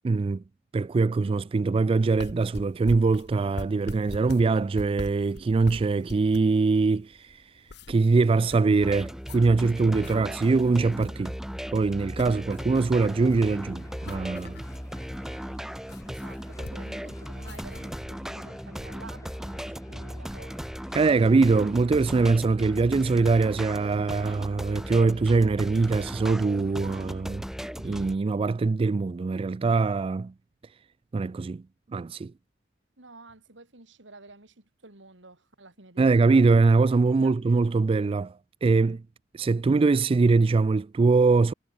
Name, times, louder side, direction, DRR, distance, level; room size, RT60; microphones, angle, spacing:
voice 1, 0.0-0.4 0.7-11.4 11.7-14.6 20.9-27.4 27.8-30.3 31.1-31.6 31.9-32.3 36.0-39.0 39.3-41.5, right 3 dB, 30° right, 0.3 m, -23 dB
sound 1, 2.0-18.0, left 2 dB, 65° left, 1.0 m, -44 dB
sound 2, 8.8-28.2, equal, 5° right, 1.1 m, -37 dB
sound 3, 13.1-22.3, left 1 dB, 20° left, 1.4 m, -52 dB
voice 2, 16.1-20.6 33.0-36.5 37.1-37.6, right 2 dB, 75° right, 3.2 m, -50 dB
head